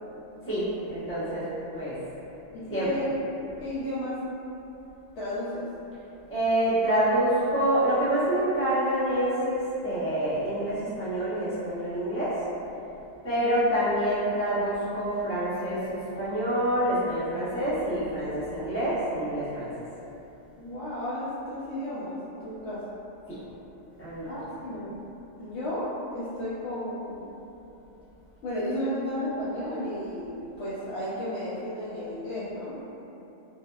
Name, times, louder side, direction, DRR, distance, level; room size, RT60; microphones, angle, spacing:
voice 1, 0.5-1.4 1.7-2.0 2.7-2.9 6.3-12.3 13.2-19.7 23.3-23.4 24.0-24.3, right 1 dB, 15° left, -13 dB, 0.6 m, -27 dB
voice 2, 2.5-3.2 3.6-4.2 5.2-5.7 13.4-13.7 20.6-22.8 24.2-25.0 25.4-27.3 28.4-32.8, left 1 dB, 65° left, -10 dB, 0.8 m, -33 dB
3.3 x 2.1 x 2.2 m, 3.0 s
omnidirectional pair, 1.4 m